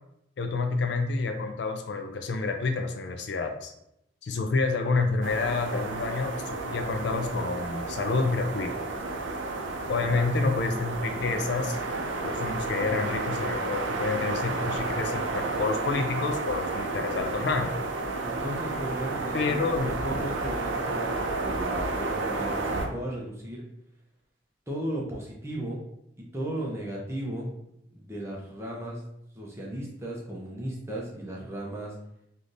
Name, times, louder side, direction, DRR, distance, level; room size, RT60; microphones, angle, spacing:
voice 1, 0.4-3.7 4.2-8.7 9.9-11.8 12.2-17.7 19.3-19.9, left 4 dB, 65° left, 6 dB, 0.4 m, -28 dB
sound 1, 5.2-22.9, right 3 dB, 80° right, 0.5 m, -31 dB
voice 2, 9.9-10.3 18.2-23.6 24.7-25.8 26.2-27.5 27.9-29.1 29.3-31.9, right 1 dB, 15° right, -2 dB, 0.6 m, -36 dB
3.4 x 2.6 x 2.5 m, 0.79 s
head